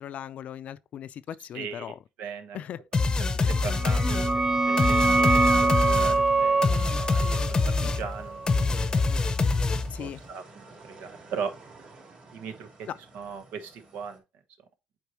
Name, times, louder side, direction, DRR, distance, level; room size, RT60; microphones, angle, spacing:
voice 1, 0.0-2.0 2.5-2.8 9.9-10.2 12.9-13.0, left 10 dB, 55° left, 0.5 m, -38 dB
voice 2, 1.5-1.9 2.2-2.6 3.6-4.2 4.7-7.4 7.8-8.7 10.0-10.4 10.9-11.5 12.3-12.7 13.1-14.2, right 6 dB, 75° right, 1.2 m, -38 dB
sound 1, 2.9-10.1, left 3 dB, 30° left, 0.8 m, -25 dB
sound 2, 3.6-14.2, right 3 dB, 50° right, 3.1 m, -53 dB
sound 3, 3.7-9.1, right 3 dB, 20° right, 0.5 m, -25 dB
8.2 x 4.5 x 3.0 m
cardioid pair, 105°, 3 cm